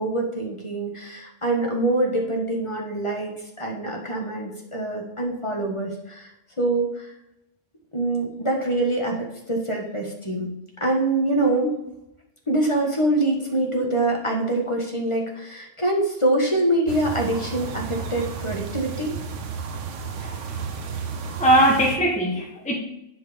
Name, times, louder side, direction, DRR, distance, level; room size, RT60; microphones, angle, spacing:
voice 1, 0.0-3.3 3.6-6.3 6.6-7.1 7.9-10.5 10.8-11.8 12.5-19.1, right 2 dB, 25° left, 0 dB, 1.5 m, -24 dB
sound 1, 16.9-22.0, right 6 dB, 80° right, 1.2 m, -32 dB
voice 2, 20.2-20.9 21.4-22.8, right 1 dB, 5° left, -1 dB, 1.1 m, -21 dB
11.0 x 4.9 x 5.1 m, 0.86 s
omnidirectional pair, 1.3 m